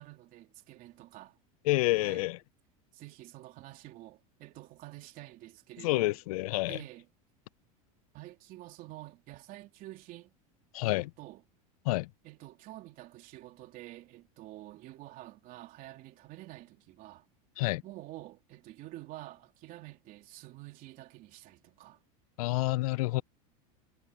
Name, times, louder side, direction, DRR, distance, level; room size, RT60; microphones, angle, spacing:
voice 1, 0.0-1.4 2.0-2.3 2.9-6.2 6.7-7.1 8.1-10.3 10.8-11.4 12.2-17.2 17.8-22.0, right 17 dB, 50° right, 3.2 m, -48 dB
voice 2, 1.7-2.4 5.8-6.8 10.7-11.1 11.9-12.1 17.6-17.8 22.4-23.2, left 20 dB, 80° left, 0.4 m, -28 dB
supercardioid pair, 125°, 19 cm